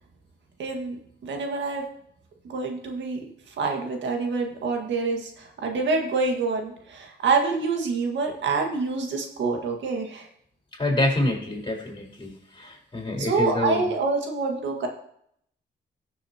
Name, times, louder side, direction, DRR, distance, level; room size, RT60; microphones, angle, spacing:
voice 1, 0.6-1.8 2.5-3.2 3.5-10.3 13.2-14.9, right 4 dB, 75° right, 3 dB, 1.8 m, -26 dB
voice 2, 10.8-13.8, left 2 dB, 25° left, 0 dB, 4.2 m, -27 dB
15.5 x 6.9 x 2.9 m, 0.70 s
cardioid pair, 70°, 19 cm